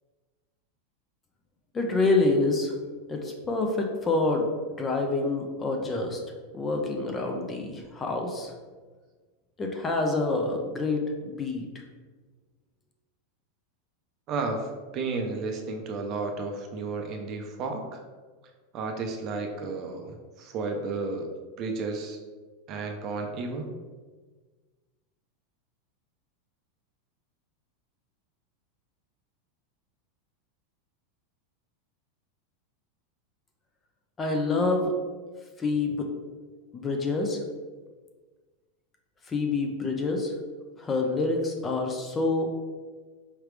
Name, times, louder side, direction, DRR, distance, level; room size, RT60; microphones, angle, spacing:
voice 1, 1.7-2.7 3.1-4.4 4.8-6.2 6.5-8.5 9.6-11.6 34.2-34.9 35.6-36.1 36.7-37.4 39.3-40.3 40.8-42.5, left 3 dB, 15° left, 2 dB, 0.5 m, -27 dB
voice 2, 14.3-18.0 18.7-21.3 21.6-22.2 22.7-23.7, right 3 dB, 35° right, 4 dB, 0.5 m, -32 dB
4.9 x 3.2 x 3.2 m, 1.4 s
supercardioid pair, 160°, 0 cm